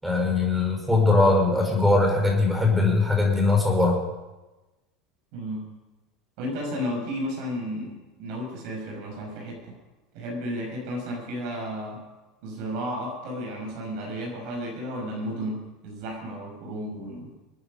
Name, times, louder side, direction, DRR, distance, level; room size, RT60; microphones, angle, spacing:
voice 1, 0.0-4.0, left 3 dB, 5° right, 1 dB, 5.2 m, -21 dB
voice 2, 5.3-5.7 6.4-9.8 10.1-12.0 12.4-17.3, equal, 65° right, 0 dB, 6.4 m, -33 dB
26.0 x 9.6 x 5.4 m, 1.1 s
supercardioid pair, 110°, 0 cm